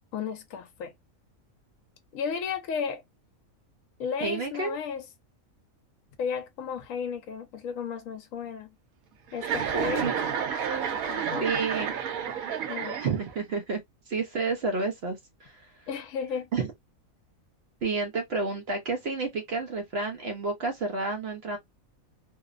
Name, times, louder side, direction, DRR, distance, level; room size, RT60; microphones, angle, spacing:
voice 1, 0.1-0.9 2.1-3.0 4.0-5.0 6.2-8.7 9.3-10.1 11.1-11.4 12.7-13.0 15.9-16.5, left 6 dB, 75° left, 0.9 m, -33 dB
voice 2, 4.2-4.8 10.0-10.1 11.4-11.9 13.0-13.8 14.1-15.9 16.5-16.7 17.8-21.6, right 4 dB, 65° right, 0.6 m, -30 dB
Chuckle chortle, 9.4-13.4, right 7 dB, 90° right, 1.1 m, -30 dB
2.7 x 2.0 x 2.3 m
omnidirectional pair, 1.4 m